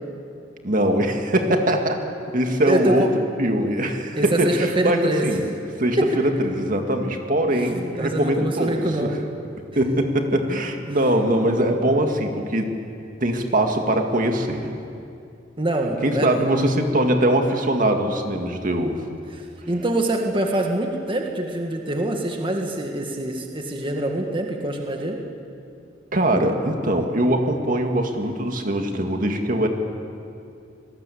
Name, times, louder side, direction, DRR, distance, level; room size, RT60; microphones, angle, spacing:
voice 1, 0.6-2.0 2.3-3.1 3.4-5.5 5.8-9.1 9.8-12.7 13.2-14.7 16.0-19.0 26.1-29.7, right 1 dB, 45° right, 4 dB, 2.0 m, -22 dB
voice 2, 2.7-3.1 4.2-5.3 6.0-6.2 7.5-9.1 10.8-11.0 15.6-16.4 19.3-25.2, right 1 dB, 30° right, 2 dB, 1.9 m, -25 dB
25.5 x 20.0 x 8.5 m, 2.5 s
head